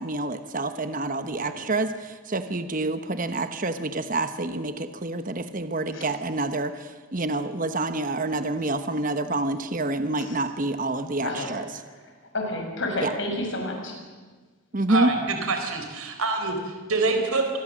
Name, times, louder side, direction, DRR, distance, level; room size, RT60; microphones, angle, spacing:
voice 1, 0.0-11.6 13.0-13.1 14.7-15.1, right 2 dB, 40° right, 9 dB, 1.1 m, -27 dB
voice 2, 11.7-14.0, left 1 dB, 60° left, 2 dB, 6.5 m, -31 dB
voice 3, 14.9-17.6, right 3 dB, 85° right, 5 dB, 4.3 m, -26 dB
26.0 x 21.5 x 7.6 m, 1.4 s
head